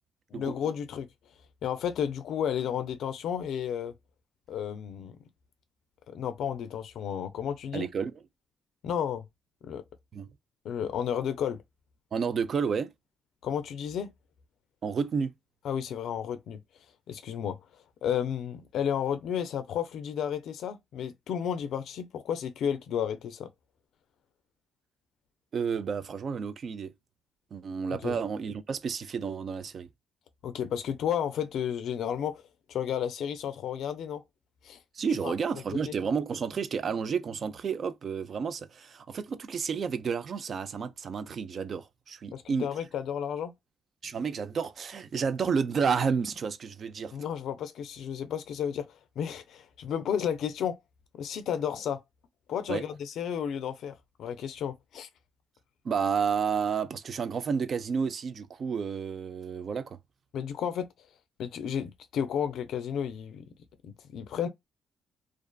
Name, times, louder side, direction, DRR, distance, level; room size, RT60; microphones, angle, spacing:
voice 1, 0.3-1.1 1.6-3.9 4.5-5.2 6.1-7.9 8.8-9.2 9.6-9.8 10.6-11.6 13.4-14.1 15.6-16.6 17.1-17.6 18.0-23.5 28.0-28.2 30.4-32.4 32.7-34.2 34.6-34.8 35.2-35.3 35.8-35.9 42.3-43.5 47.1-48.9 49.2-50.8 51.1-52.0 52.5-53.9 54.2-55.1 60.3-60.9 61.4-63.5 63.8-64.5, left 8 dB, 75° left, 0.4 m, -32 dB
voice 2, 7.7-8.1 10.1-10.3 12.1-12.9 14.8-15.3 25.5-26.9 27.5-29.9 34.9-42.7 44.0-47.2 52.7-52.8 55.8-60.0, right 6 dB, 50° right, 0.4 m, -31 dB
2.5 x 2.4 x 2.2 m
cardioid pair, 90°, 0 cm